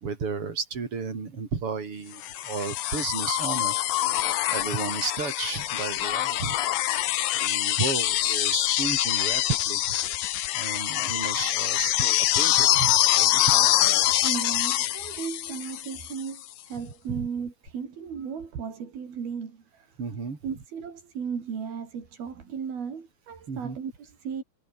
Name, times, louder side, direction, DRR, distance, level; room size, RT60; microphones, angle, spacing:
voice 1, 0.0-3.8 4.5-6.6 7.3-9.8 10.5-13.7 17.1-17.3 20.0-20.4 23.5-23.8, right 5 dB, 35° right, 4.3 m, -33 dB
sound 1, 2.2-16.2 17.7-17.8, left 14 dB, 65° left, 2.4 m, -25 dB
voice 2, 14.2-20.0 20.4-24.4, right 6 dB, 60° right, 5.8 m, -35 dB
omnidirectional pair, 4.9 m